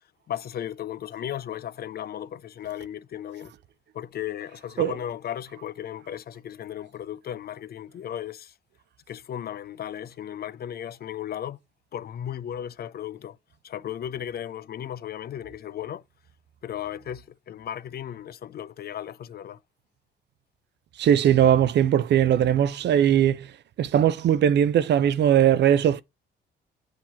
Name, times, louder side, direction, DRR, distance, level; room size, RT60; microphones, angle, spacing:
voice 1, 0.3-3.5 3.9-8.5 9.1-11.6 11.9-13.4 13.6-16.0 16.6-19.6, left 10 dB, 50° left, 0.5 m, -35 dB
voice 2, 21.0-23.5 23.8-26.0, right 10 dB, 60° right, 0.5 m, -20 dB
7.6 x 2.9 x 5.7 m
cardioid pair, 90°, 20 cm